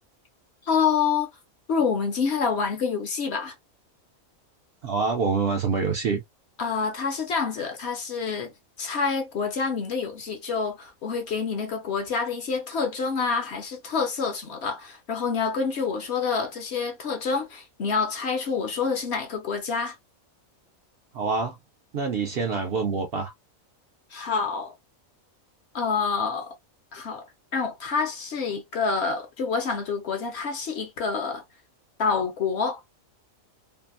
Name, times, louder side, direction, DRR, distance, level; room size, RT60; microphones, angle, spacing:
voice 1, 0.6-1.3 1.7-3.5 6.6-8.5 8.8-20.0 24.1-24.7 25.7-26.5 26.9-27.3 27.5-31.4 32.0-32.8, left 5 dB, 60° left, 0.8 m, -27 dB
voice 2, 4.8-6.2 21.1-21.6 21.9-23.3, right 5 dB, 65° right, 0.6 m, -26 dB
2.7 x 2.4 x 2.4 m
omnidirectional pair, 1.4 m